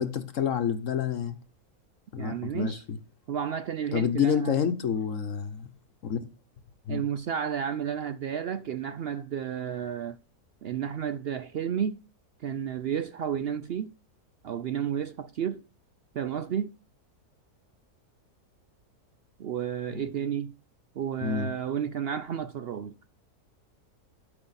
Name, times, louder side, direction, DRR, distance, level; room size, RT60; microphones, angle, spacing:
voice 1, 0.0-1.4 2.1-3.0 3.9-5.7 6.0-6.2 6.9-7.0 19.9-20.0 21.2-21.5, left 7 dB, 60° left, 1.2 m, -28 dB
voice 2, 2.2-2.8 3.3-4.6 6.9-10.2 10.6-12.0 12.4-13.9 14.4-15.6 16.1-16.7 19.4-20.5 21.0-22.9, right 8 dB, 85° right, 0.5 m, -32 dB
12.0 x 5.6 x 4.0 m
omnidirectional pair, 1.7 m